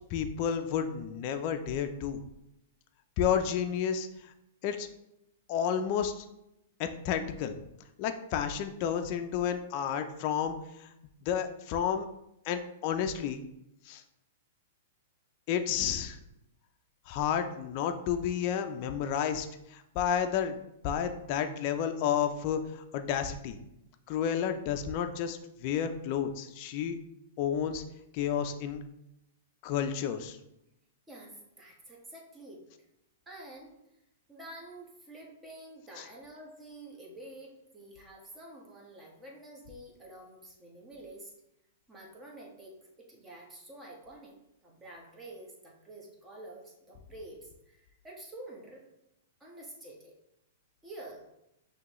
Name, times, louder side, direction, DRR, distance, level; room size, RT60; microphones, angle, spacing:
voice 1, 0.1-2.2 3.2-4.1 4.6-4.9 5.5-6.2 6.8-7.6 8.0-10.9 11.2-12.1 12.5-13.4 13.9-14.0 15.5-16.2 17.1-20.6 20.8-23.6 24.1-27.0 27.4-27.8 28.1-28.8 29.6-30.4 36.0-36.1, left 8 dB, 45° left, 7 dB, 0.4 m, -31 dB
voice 2, 31.1-32.6 33.3-33.7 34.3-41.3 41.9-44.4 44.6-48.8 49.4-50.1 50.8-51.2, right 1 dB, 15° right, -2 dB, 1.3 m, -48 dB
5.8 x 2.8 x 3.0 m, 0.85 s
hypercardioid pair, 130°, 0 cm